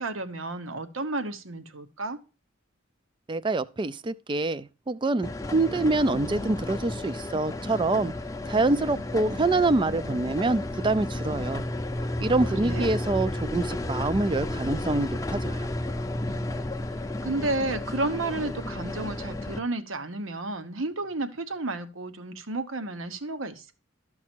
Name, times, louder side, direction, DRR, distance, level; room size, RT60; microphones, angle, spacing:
voice 1, 0.0-2.2 12.2-12.9 17.2-23.7, right 2 dB, 80° right, 1.1 m, -32 dB
voice 2, 3.3-8.1 8.4-11.6 12.2-15.7, right 2 dB, 25° right, 0.4 m, -26 dB
sound 1, 5.2-19.6, left 1 dB, 15° left, 0.6 m, -32 dB
12.5 x 6.0 x 4.4 m
head